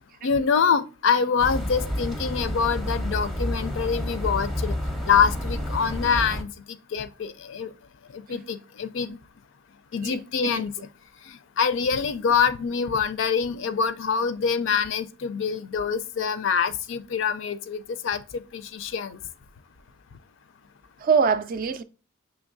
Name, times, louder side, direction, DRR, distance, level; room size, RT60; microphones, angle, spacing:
voice 1, 0.2-4.8 5.1-6.5 6.9-7.7 8.1-9.2 9.9-10.7 11.3-19.2, left 6 dB, 60° left, 0.4 m, -25 dB
sound 1, 1.4-6.4, equal, ahead, 0.6 m, -29 dB
voice 2, 10.0-10.6 21.0-21.8, right 6 dB, 45° right, 0.4 m, -24 dB
6.2 x 3.0 x 2.5 m
head